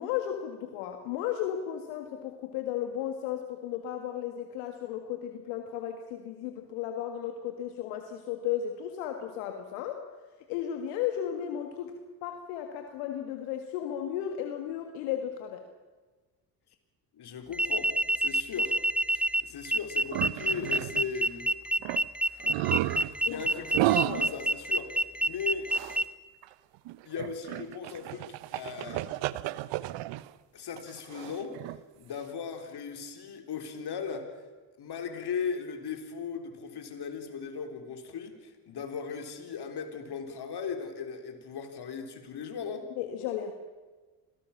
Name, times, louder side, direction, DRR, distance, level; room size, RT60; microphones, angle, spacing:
voice 1, 0.0-10.1 10.5-11.9 12.2-15.6 23.2-23.4 43.0-43.5, left 10 dB, 80° left, 5 dB, 1.9 m, -34 dB
voice 2, 17.1-18.8 19.1-21.5 23.2-25.7 27.0-29.1 30.5-34.4 34.8-42.9, left 6 dB, 55° left, 5 dB, 3.9 m, -38 dB
sound 1, 17.5-26.0, right 1 dB, ahead, 1.1 m, -27 dB
sound 2, 20.1-21.1 21.5-21.6 21.8-22.1 22.4-24.5 25.7-26.0 26.4-26.5 26.9-30.3 30.8-31.8, right 16 dB, 65° right, 0.9 m, -32 dB
26.0 x 18.0 x 7.2 m, 1.3 s
hypercardioid pair, 55°, 48 cm